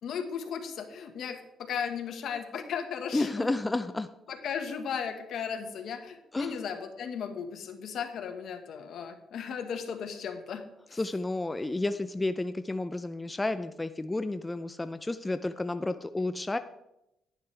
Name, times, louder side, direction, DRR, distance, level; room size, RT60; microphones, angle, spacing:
voice 1, 0.0-3.5 4.3-10.6 10.9-11.0, left 7 dB, 70° left, 6 dB, 1.4 m, -36 dB
voice 2, 3.1-4.1 6.3-6.6 10.9-16.6, left 2 dB, 15° left, 10 dB, 0.5 m, -31 dB
11.0 x 10.5 x 3.4 m, 0.86 s
cardioid pair, 90°, 0 cm